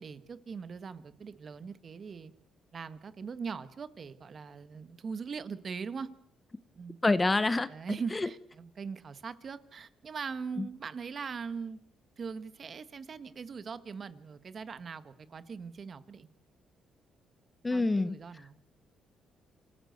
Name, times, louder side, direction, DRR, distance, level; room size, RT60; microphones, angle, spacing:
voice 1, 0.0-2.3 2.7-6.1 6.7-7.0 7.7-11.8 12.2-16.3 17.7-18.5, right 5 dB, 45° right, 13 dB, 1.5 m, -41 dB
voice 2, 7.0-7.7 8.1-8.3 10.6-10.7 17.6-18.2, left 2 dB, 20° left, 15 dB, 1.1 m, -26 dB
26.5 x 15.0 x 8.1 m, 0.71 s
cardioid pair, 90°, 0 cm